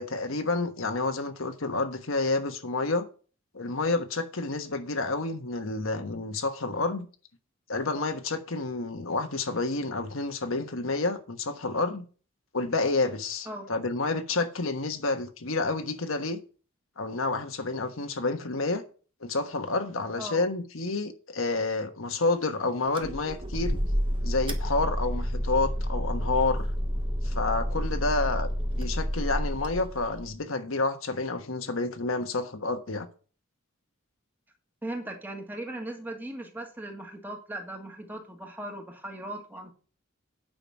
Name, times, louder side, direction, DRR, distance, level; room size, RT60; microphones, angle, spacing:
voice 1, 0.0-3.1 3.5-7.1 7.7-12.0 12.5-16.4 17.0-18.8 19.2-23.8 24.2-26.7 27.2-28.5 28.8-33.1, left 3 dB, 80° left, 1.3 m, -29 dB
sound 1, 22.9-30.3, equal, 25° right, 1.1 m, -30 dB
voice 2, 34.8-39.7, right 1 dB, 10° right, 1.8 m, -38 dB
9.0 x 5.9 x 5.9 m
head